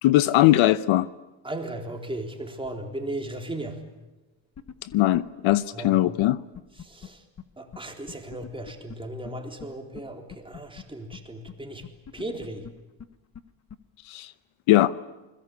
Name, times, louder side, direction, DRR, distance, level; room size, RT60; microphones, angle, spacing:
voice 1, 0.0-1.1 4.8-6.4 14.1-14.3 14.7-14.9, left 15 dB, 70° left, 16 dB, 0.9 m, -20 dB
voice 2, 1.4-3.8 5.7-6.0 6.8-7.2 7.6-11.8 12.1-12.7, right 1 dB, 10° right, 3 dB, 3.8 m, -36 dB
sound 1, 4.5-5.2 5.5-5.6 5.8-5.9 6.2-6.3 6.5-7.1 7.4-7.5 7.7-7.8 8.1-8.9 9.2-9.3 9.6-9.7 9.9-10.0 10.3-10.8 11.1-11.2 11.5-11.6 11.8-12.7 13.0-13.1 13.3-13.4 13.7-13.8, left 8 dB, 35° left, 1.4 m, -41 dB
28.5 x 21.5 x 8.6 m, 1.1 s
cardioid pair, 120°, 50 cm